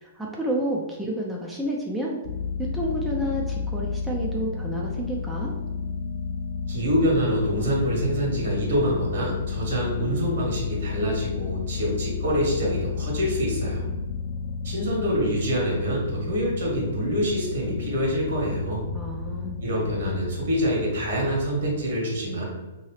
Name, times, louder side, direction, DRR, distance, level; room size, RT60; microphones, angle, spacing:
voice 1, 0.0-2.2 2.6-5.5 18.9-19.6, equal, 5° right, -3 dB, 0.5 m, -30 dB
sound 1, 2.2-21.9, left 5 dB, 55° left, 0.3 m, -32 dB
voice 2, 6.7-13.9 14.6-18.8 19.6-22.4, equal, 65° right, -3 dB, 1.4 m, -26 dB
2.8 x 2.7 x 3.1 m, 1.1 s
figure-of-eight pair, 115°, 0 cm